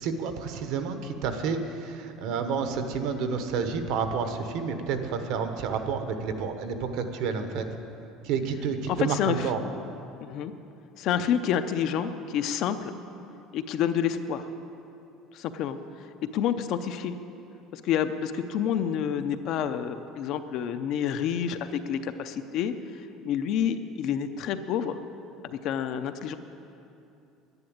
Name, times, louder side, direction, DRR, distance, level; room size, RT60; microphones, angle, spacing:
voice 1, 0.0-7.6 8.2-9.6, right 5 dB, 55° right, 7 dB, 1.1 m, -30 dB
voice 2, 9.0-9.5 10.2-10.5 11.0-12.9 13.5-14.5 15.3-15.8 16.2-17.1 17.7-22.7 23.2-25.0 25.4-26.3, left 8 dB, 45° left, 9 dB, 0.6 m, -28 dB
10.5 x 10.5 x 8.7 m, 2.7 s
cardioid pair, 180°, 0 cm